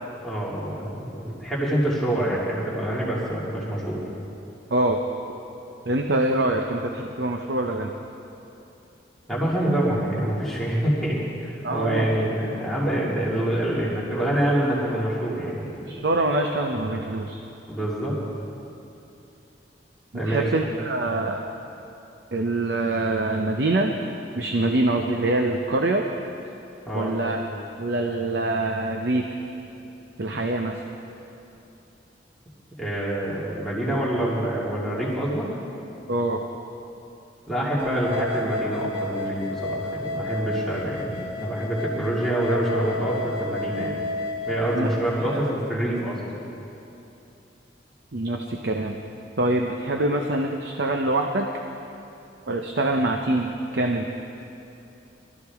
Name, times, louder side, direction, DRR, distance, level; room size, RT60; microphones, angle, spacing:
voice 1, 0.2-4.0 9.3-15.8 17.7-18.1 20.1-20.4 26.9-27.1 32.8-35.5 37.5-43.9 44.5-46.2, right 1 dB, ahead, -8 dB, 2.3 m, -26 dB
voice 2, 5.9-7.9 11.6-12.1 15.9-17.4 20.3-21.4 22.3-24.0 24.4-26.0 26.9-27.4 27.8-29.4 30.2-30.8 36.1-36.4 44.8-44.9 45.3-45.4 48.1-49.0 49.4-51.5 52.5-54.1, right 2 dB, 65° right, 3 dB, 0.7 m, -24 dB
sound 1, 37.8-45.5, left 2 dB, 30° right, 1.2 m, -32 dB
22.0 x 13.5 x 3.5 m, 2.8 s
head